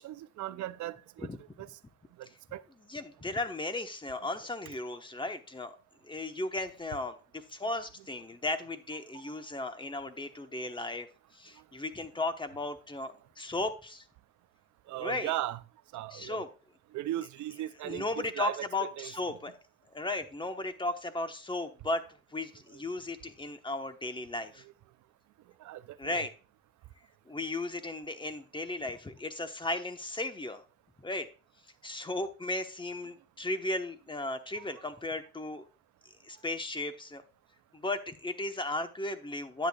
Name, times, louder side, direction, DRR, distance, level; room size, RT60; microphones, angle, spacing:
voice 1, 0.0-1.3 1.6-1.7 2.5-2.6 4.7-5.0 14.9-15.6 15.9-16.4 16.9-19.1 25.6-26.2 34.6-34.7, right 14 dB, 75° right, 0.5 m, -37 dB
voice 2, 2.9-5.7 6.1-11.1 11.3-14.0 15.0-15.3 16.1-16.5 17.8-19.5 19.9-22.0 22.3-24.6 26.0-26.3 27.3-30.6 31.0-31.3 31.8-35.6 36.2-37.2 37.7-39.7, left 2 dB, 15° left, 1.0 m, -35 dB
10.0 x 8.2 x 2.3 m
cardioid pair, 90°, 30 cm